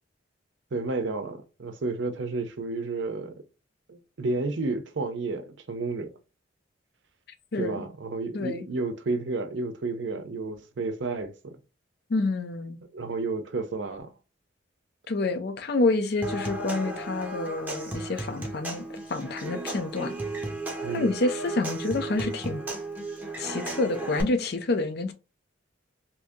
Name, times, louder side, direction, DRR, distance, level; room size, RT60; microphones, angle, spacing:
voice 1, 0.7-3.3 3.9-6.1 7.6-11.5 12.9-14.1 20.8-21.1, right 3 dB, 65° right, 0.6 m, -31 dB
voice 2, 7.5-7.9 8.3-8.7 12.1-12.8 15.1-20.1 20.9-22.6 23.4-25.1, left 3 dB, 55° left, 0.5 m, -28 dB
Human voice / Acoustic guitar / Percussion, 16.2-24.2, right 2 dB, 10° right, 0.7 m, -34 dB
2.8 x 2.6 x 3.5 m
head